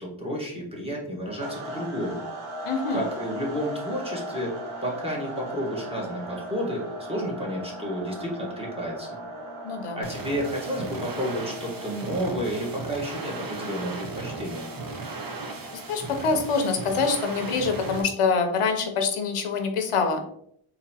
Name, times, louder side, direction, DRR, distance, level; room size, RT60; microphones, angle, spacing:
voice 1, 0.0-2.2 2.9-9.2 9.9-14.7, equal, 10° right, -3 dB, 1.2 m, -31 dB
sound 1, 1.4-16.2, right 1 dB, 80° right, 0.9 m, -38 dB
voice 2, 2.6-3.0 9.6-10.0 15.9-20.2, left 4 dB, 85° left, 5 dB, 0.7 m, -25 dB
sound 2, 10.0-18.0, right 3 dB, 45° right, 0.7 m, -37 dB
3.9 x 2.8 x 2.7 m, 0.68 s
wide cardioid pair, 80°, 49 cm